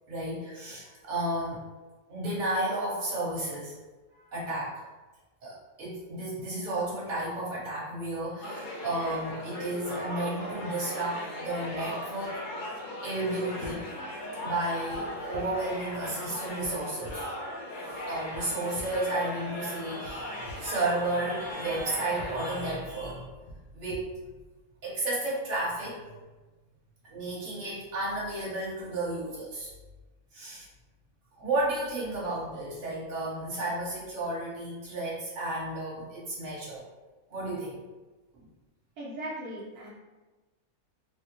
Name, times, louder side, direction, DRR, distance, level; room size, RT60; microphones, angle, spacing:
voice 1, 0.1-1.6 2.1-3.8 4.2-4.8 5.4-12.4 13.0-13.8 14.4-17.2 18.1-23.3 23.7-24.0 24.8-26.1 27.1-29.7 30.3-30.7 31.3-36.8 37.3-37.8 38.3-38.4, right 2 dB, 50° right, -7 dB, 1.6 m, -32 dB
sound 1, 8.4-22.8, left 1 dB, 80° left, 0.4 m, -38 dB
sound 2, 13.6-13.7 14.9-15.0 15.3-15.4 16.6-16.7 17.0-17.2 18.3-18.4 18.7-18.8 20.0-20.1 20.5-20.6 21.7-21.8 22.2-22.3 23.5-23.6 23.9-24.0, left 1 dB, 65° left, 1.2 m, -43 dB
voice 2, 39.0-39.9, right 1 dB, 75° right, -9 dB, 1.3 m, -38 dB
4.3 x 2.1 x 2.9 m, 1.2 s
omnidirectional pair, 1.6 m